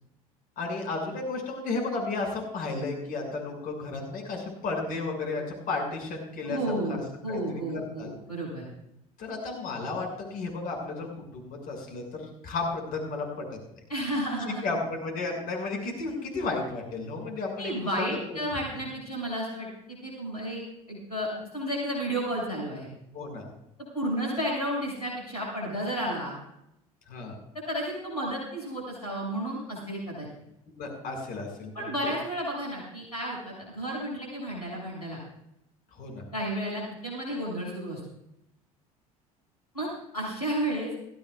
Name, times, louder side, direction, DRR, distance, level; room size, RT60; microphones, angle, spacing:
voice 1, 0.6-6.6 6.9-7.0 7.3-8.1 9.2-11.1 11.3-13.4 14.6-17.7 18.3-18.4 23.1-23.5 27.1-27.4 30.8-32.1 36.0-36.2, left 3 dB, 50° left, 1 dB, 6.3 m, -33 dB
voice 2, 6.4-8.7 13.9-14.6 17.6-20.6 20.9-21.3 21.5-22.9 23.9-26.4 27.5-30.3 31.7-35.2 36.3-38.0 39.7-40.9, right 1 dB, 90° left, -3 dB, 6.8 m, -32 dB
21.5 x 15.5 x 2.4 m, 0.80 s
figure-of-eight pair, 65°, 19 cm